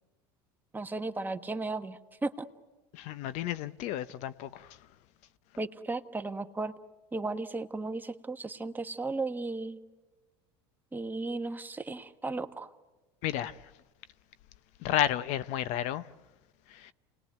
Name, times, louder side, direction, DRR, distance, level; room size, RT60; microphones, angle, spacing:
voice 1, 0.7-2.5 5.6-6.7 7.1-9.8 10.9-12.7, right 3 dB, 15° right, 1.3 m, -35 dB
voice 2, 2.9-4.9 13.2-13.7 14.8-16.1 16.7-16.9, left 11 dB, 60° left, 0.8 m, -32 dB
28.0 x 20.0 x 9.4 m
supercardioid pair, 100°, 14 cm